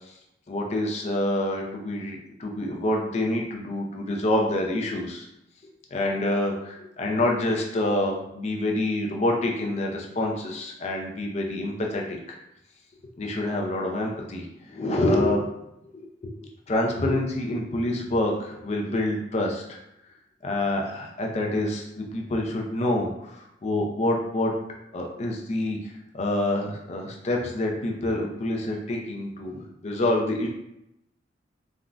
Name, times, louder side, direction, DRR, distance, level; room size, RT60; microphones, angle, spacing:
voice 1, 0.5-5.3 5.9-12.4 13.2-15.5 15.9-16.4 16.7-19.6 20.4-23.3 23.6-24.6 24.9-25.8 26.1-30.5, left 1 dB, 35° left, 0 dB, 0.4 m, -27 dB
3.5 x 2.1 x 2.4 m, 0.84 s
head